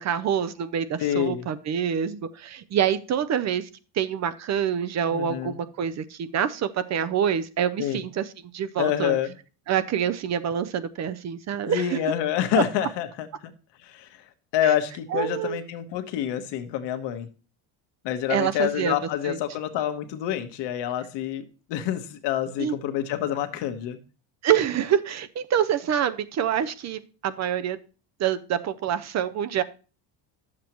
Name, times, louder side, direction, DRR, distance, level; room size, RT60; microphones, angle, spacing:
voice 1, 0.0-3.7 3.9-9.2 9.7-12.0 12.6-12.7 14.6-14.7 15.1-15.6 18.3-18.9 19.2-19.4 22.6-22.7 24.4-27.8 28.2-29.6, right 9 dB, 40° right, 12 dB, 0.5 m, -26 dB
voice 2, 1.0-1.4 5.1-5.6 7.8-8.0 8.8-9.3 11.7-13.5 13.8-14.1 14.5-17.3 18.0-21.4 21.7-24.0, left 11 dB, 70° left, 8 dB, 1.3 m, -27 dB
11.5 x 7.4 x 3.0 m, 0.36 s
cardioid pair, 140°, 44 cm